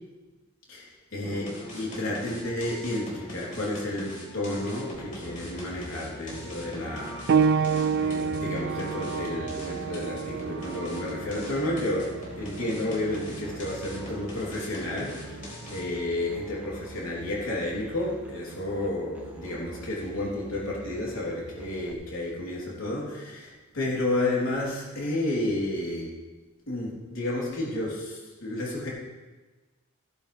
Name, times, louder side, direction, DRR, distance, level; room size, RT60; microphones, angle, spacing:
voice 1, 0.7-15.4 15.7-26.1 26.7-28.9, left 1 dB, 85° left, -5 dB, 3.4 m, -31 dB
sound 1, 1.2-16.0, equal, 40° left, 4.6 m, -42 dB
Musical instrument, 4.9-21.9, equal, 10° right, 1.3 m, -47 dB
sound 2, 7.3-17.5 18.5-18.6 19.3-19.4, right 6 dB, 50° right, 0.3 m, -31 dB
15.5 x 11.5 x 3.4 m, 1.2 s
head